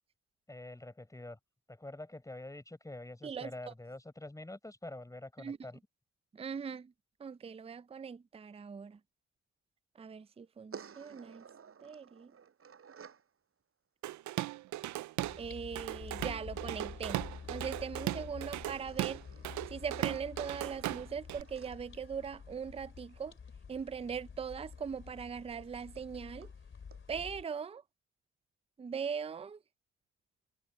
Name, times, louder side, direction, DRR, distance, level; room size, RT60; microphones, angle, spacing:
voice 1, 0.5-1.4 1.7-5.8, left 2 dB, 10° left, 4.4 m, -46 dB
voice 2, 6.3-6.9 7.2-9.0 10.0-11.4 11.8-12.3 15.4-19.2 19.7-23.3 23.7-26.5 27.1-27.8 28.8-29.6, right 6 dB, 20° right, 0.5 m, -40 dB
sound 1, 10.7-13.3 16.8-18.2 18.7-22.8 24.7-24.8 25.1-25.2 25.5-25.6 26.0-26.1 26.4-26.5 26.9-27.0, right 7 dB, 45° right, 6.5 m, -55 dB
Drum kit / Drum, 14.0-15.4 15.8-21.4, right 16 dB, 70° right, 0.5 m, -37 dB
sound 2, 15.2-27.4, left 6 dB, 40° left, 3.4 m, -49 dB
cardioid pair, 90°, 30 cm